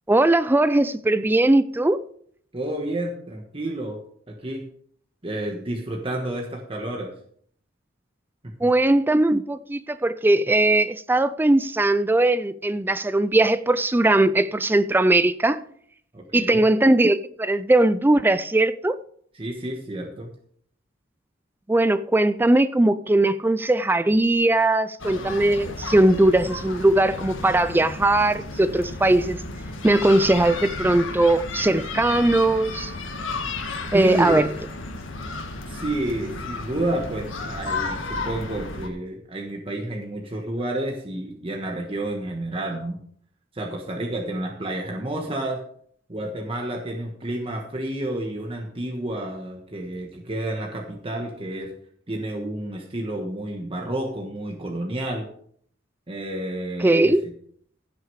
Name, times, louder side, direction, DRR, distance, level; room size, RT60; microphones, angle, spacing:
voice 1, 0.1-2.0 8.6-15.6 16.3-19.0 21.7-29.4 29.8-32.9 33.9-34.4 56.8-57.2, right 2 dB, 10° right, 0.3 m, -19 dB
voice 2, 2.5-4.0 4.3-4.6 5.2-7.1 8.6-8.7 16.1-16.6 19.3-20.3 33.9-34.5 35.7-43.0 43.5-45.6 46.1-51.7 52.1-55.3 56.1-57.3, right 1 dB, 30° right, 1.3 m, -30 dB
sound 1, 25.0-38.9, left 3 dB, 85° left, 1.7 m, -33 dB
16.0 x 6.5 x 4.7 m
head